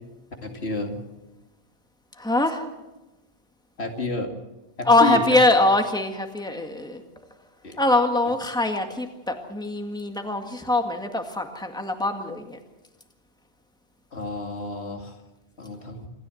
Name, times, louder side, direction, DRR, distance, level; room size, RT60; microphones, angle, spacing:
voice 1, 0.4-1.0 3.8-4.4 4.8-5.4 7.6-7.8 8.2-8.4 14.1-15.2 15.6-16.1, left 2 dB, 80° left, 3 dB, 2.6 m, -30 dB
voice 2, 2.2-2.6 4.9-7.0 7.8-12.6, left 2 dB, 5° left, 4 dB, 1.9 m, -23 dB
26.5 x 13.5 x 7.9 m, 1.0 s
omnidirectional pair, 1.1 m